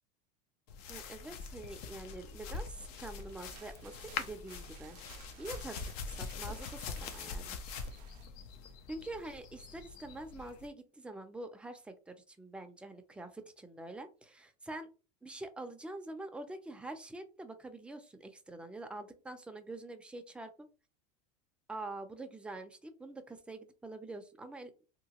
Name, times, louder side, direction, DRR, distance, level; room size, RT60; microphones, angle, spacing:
sound 1, 0.7-10.7, left 5 dB, 65° left, 0.6 m, -44 dB
voice 1, 0.9-7.6 8.9-14.9 15.2-20.7 21.7-24.7, right 2 dB, 5° right, 7 dB, 0.4 m, -46 dB
sound 2, 3.0-8.3, right 12 dB, 75° right, 0.4 m, -58 dB
2.8 x 2.2 x 2.9 m, 0.34 s
supercardioid pair, 110°, 21 cm